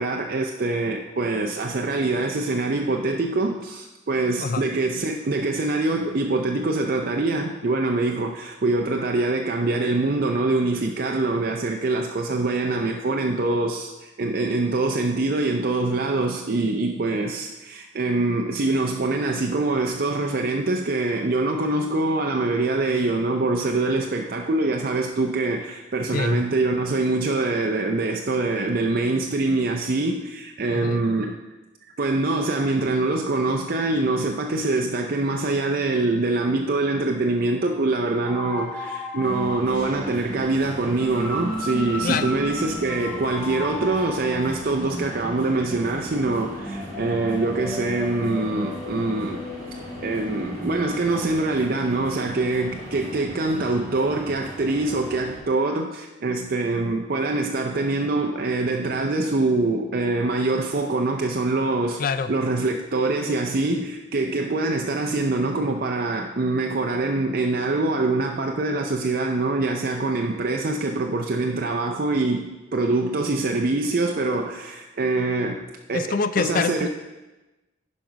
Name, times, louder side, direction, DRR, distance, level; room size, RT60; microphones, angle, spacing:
voice 1, 0.0-31.4 32.0-49.4 50.0-76.9, right 2 dB, 50° right, 3 dB, 0.5 m, -24 dB
voice 2, 26.1-26.4 30.7-31.0 42.0-42.3 62.0-62.3 75.9-76.9, left 5 dB, 45° left, 13 dB, 0.4 m, -25 dB
sound 1, 38.3-51.0, left 1 dB, 5° left, 1.1 m, -35 dB
sound 2, 39.2-55.4, equal, 25° left, 3.1 m, -39 dB
10.5 x 5.3 x 5.1 m, 1.1 s
head